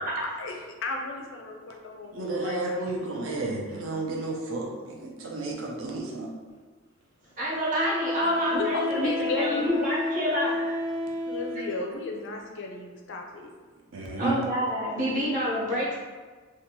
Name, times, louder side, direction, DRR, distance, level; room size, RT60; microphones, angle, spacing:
voice 1, 0.8-2.9 8.5-9.9 11.3-13.5, left 3 dB, 55° left, 2 dB, 0.4 m, -33 dB
voice 2, 2.1-6.3 13.9-14.4, right 2 dB, 65° right, -1 dB, 0.5 m, -32 dB
Wind instrument woodwind instrument, 6.5-6.6 7.8-11.8, left 2 dB, 15° right, 0.4 m, -30 dB
voice 3, 7.4-10.6 14.2-15.9, equal, 40° right, -7 dB, 0.8 m, -28 dB
2.6 x 2.3 x 2.9 m, 1.4 s
head